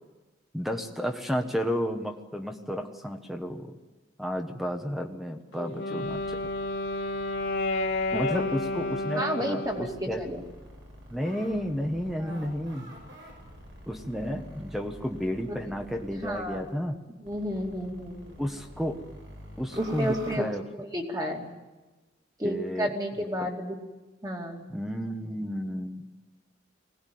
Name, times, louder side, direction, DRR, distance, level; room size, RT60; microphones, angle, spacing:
voice 1, 0.5-3.7 4.2-6.4 8.1-10.2 11.1-12.9 13.9-17.0 18.4-19.0 19.6-20.6 22.4-22.9 24.7-26.0, equal, ahead, 4 dB, 1.2 m, -32 dB
Wind instrument woodwind instrument, 5.5-10.1, left 2 dB, 75° left, 2.4 m, -31 dB
sound 1, 6.0-9.1 9.6-16.7 17.3-20.4, equal, 70° right, 7.5 m, -48 dB
voice 2, 8.1-8.5 9.1-10.4 12.2-12.5 16.2-16.6 17.2-18.3 19.8-21.5 22.4-23.7 24.2-24.6, equal, 20° right, 1 dB, 2.6 m, -32 dB
21.5 x 18.5 x 9.4 m, 1.2 s
head